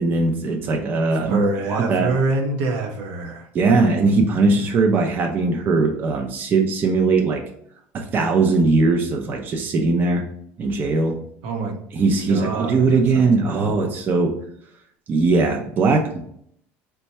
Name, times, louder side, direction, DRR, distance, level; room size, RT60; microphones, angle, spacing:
voice 1, 0.0-1.4 1.7-2.1 3.5-7.4 7.9-10.2 10.6-11.1 11.9-14.3 15.1-16.2, right 3 dB, 35° right, 2 dB, 0.6 m, -19 dB
voice 2, 1.3-3.5 11.4-11.7 12.3-13.9, right 3 dB, 75° right, 3 dB, 0.8 m, -26 dB
4.3 x 2.3 x 4.1 m, 0.68 s
supercardioid pair, 120°, 5 cm